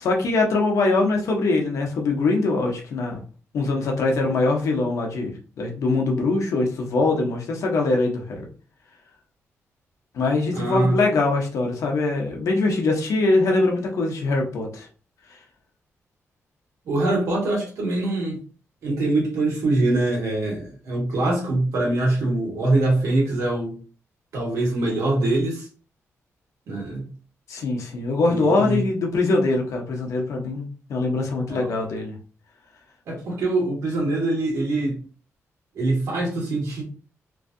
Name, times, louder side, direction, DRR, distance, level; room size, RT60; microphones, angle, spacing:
voice 1, 0.0-3.2 3.5-8.4 10.1-14.9 27.5-32.2, left 3 dB, 70° left, 1 dB, 0.8 m, -23 dB
voice 2, 10.5-10.9 16.8-18.4 18.8-23.8 24.3-25.7 26.7-27.1 28.3-28.8 31.5-31.7 33.1-34.9 35.7-36.8, right 2 dB, 75° right, -2 dB, 1.4 m, -23 dB
3.1 x 2.6 x 2.5 m, 0.38 s
wide cardioid pair, 170°, 5 cm